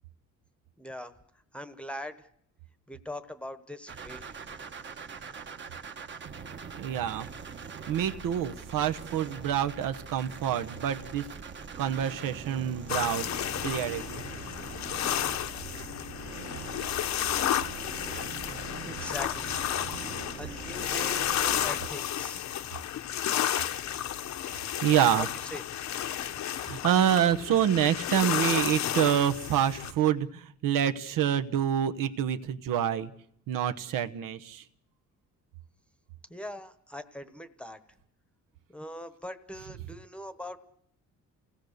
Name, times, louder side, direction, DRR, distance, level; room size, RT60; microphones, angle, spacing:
voice 1, 0.8-1.1 1.5-2.3 2.9-4.4 18.9-19.6 20.4-22.4 25.2-25.6 36.3-37.8 38.7-40.6, left 1 dB, 5° left, 11 dB, 1.0 m, -41 dB
sound 1, 3.9-21.9, right 6 dB, 35° right, 1.2 m, -43 dB
voice 2, 6.7-7.3 7.9-11.3 11.8-13.3 13.6-14.2 24.4-25.3 26.5-33.1 33.5-34.6, right 10 dB, 80° right, 9 dB, 1.1 m, -27 dB
sound 2, 12.9-29.9, left 11 dB, 60° left, 0.9 m, -32 dB
29.0 x 18.0 x 6.6 m, 0.71 s
cardioid pair, 165°, 32 cm